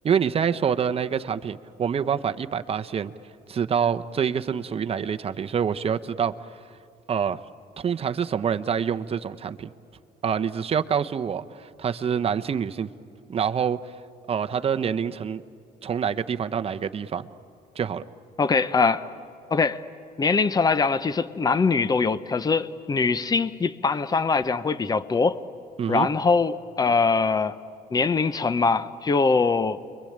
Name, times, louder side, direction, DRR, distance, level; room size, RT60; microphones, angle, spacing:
voice 1, 0.0-3.1 3.5-6.3 7.1-7.4 7.8-9.7 10.2-12.9 13.3-13.8 14.3-15.4 15.8-17.3 17.7-18.0 25.8-26.1, right 7 dB, 35° right, 9 dB, 0.9 m, -26 dB
voice 2, 18.4-19.1 19.5-19.8 20.2-25.4 25.9-27.6 27.9-29.8, left 4 dB, 25° left, 14 dB, 0.9 m, -22 dB
29.0 x 23.0 x 8.8 m, 2.4 s
cardioid pair, 110°, 17 cm